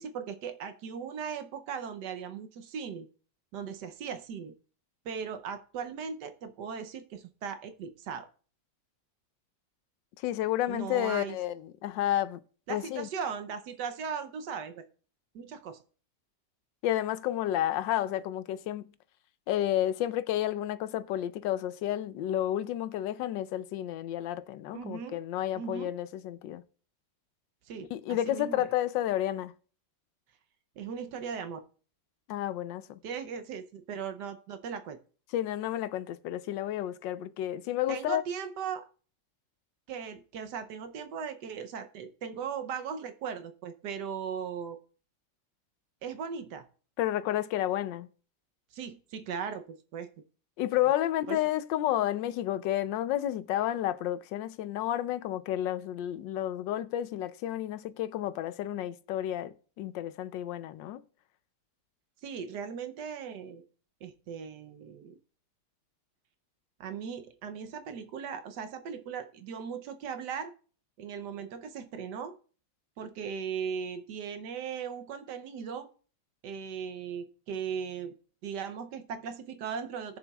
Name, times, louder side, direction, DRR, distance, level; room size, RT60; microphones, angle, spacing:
voice 1, 0.0-3.1 3.5-4.5 5.0-8.3 10.7-11.4 12.7-14.8 15.3-15.8 24.7-25.2 25.5-25.9 27.7-28.7 30.8-31.6 33.0-35.0 37.9-38.8 39.9-44.8 46.0-46.6 48.7-50.1 51.3-51.4 62.2-63.6 64.0-65.2 66.8-70.5 71.0-72.4 73.0-75.9 76.4-78.2 78.4-80.2, right 7 dB, 70° right, 1.3 m, -38 dB
voice 2, 10.2-12.4 12.7-13.1 16.8-18.8 19.5-26.6 27.9-29.5 32.3-33.0 35.3-38.2 47.0-48.1 50.6-61.0, left 12 dB, 85° left, 1.3 m, -31 dB
18.5 x 6.9 x 2.3 m
omnidirectional pair, 1.9 m